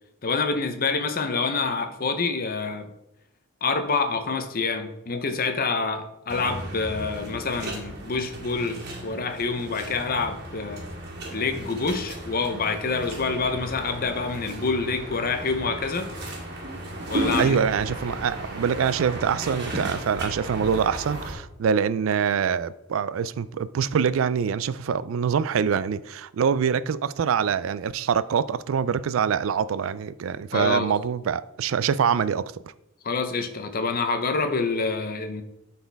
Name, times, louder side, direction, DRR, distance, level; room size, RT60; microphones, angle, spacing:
voice 1, 0.2-2.9 3.6-10.8 11.3-16.1 17.1-17.6 30.5-30.9 33.0-35.4, left 4 dB, 45° left, 0.8 m, -27 dB
sound 1, 6.3-21.3, right 1 dB, 55° right, 1.9 m, -35 dB
voice 2, 17.4-32.6, right 7 dB, 70° right, 0.3 m, -25 dB
11.5 x 4.3 x 3.4 m
head